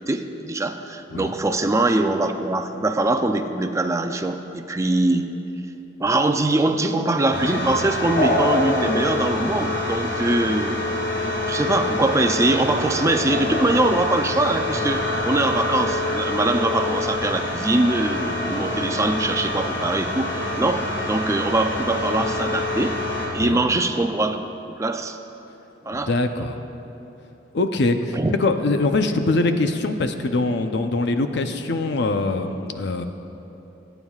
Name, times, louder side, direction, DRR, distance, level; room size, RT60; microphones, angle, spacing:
voice 1, 0.1-5.3 6.0-10.8 11.5-23.0 23.3-24.4 24.8-25.2 25.8-26.1 28.1-28.3, right 2 dB, 15° right, 6 dB, 0.4 m, -22 dB
sound 1, 7.3-23.3, left 2 dB, 90° left, 2.6 m, -26 dB
voice 2, 25.9-26.6 27.5-33.0, left 2 dB, 65° left, 7 dB, 0.6 m, -23 dB
26.5 x 9.0 x 2.4 m, 3.0 s
head